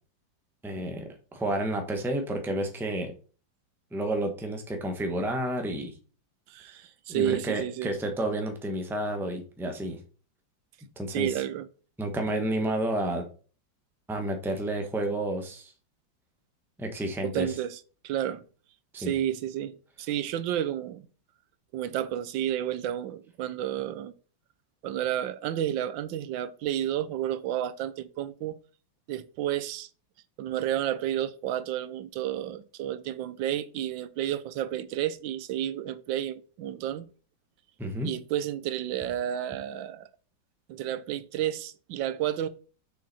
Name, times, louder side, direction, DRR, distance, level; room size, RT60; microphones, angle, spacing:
voice 1, 0.6-3.1 3.9-5.9 7.1-10.0 11.0-11.4 12.0-13.2 14.1-15.7 16.8-17.6 18.9-19.1 37.8-38.1, right 1 dB, ahead, 0.8 m, -30 dB
voice 2, 6.5-7.9 11.1-11.7 17.2-17.8 18.0-18.4 19.0-21.0 21.7-24.1 24.8-28.6 29.1-29.9 30.4-37.0 38.0-40.1 40.7-42.5, right 11 dB, 80° right, 1.3 m, -31 dB
6.1 x 6.1 x 4.1 m
omnidirectional pair, 2.1 m